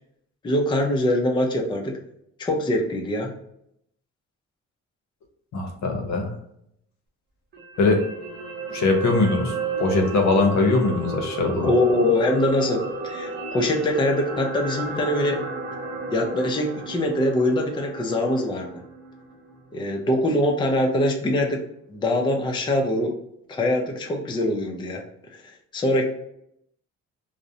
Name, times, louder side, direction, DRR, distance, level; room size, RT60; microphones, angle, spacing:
voice 1, 0.4-1.9 2.4-3.3 11.6-15.4 16.1-18.7 19.7-21.6 21.9-23.1 23.5-25.0 25.7-26.0, left 1 dB, 15° left, 1 dB, 0.4 m, -23 dB
voice 2, 5.5-6.3 7.8-8.0 8.7-11.7, left 3 dB, 65° left, 3 dB, 0.7 m, -21 dB
sound 1, 7.5-19.8 20.2-20.3, right 3 dB, 35° right, 0.6 m, -33 dB
2.5 x 2.0 x 2.7 m, 0.75 s
cardioid pair, 90°, 30 cm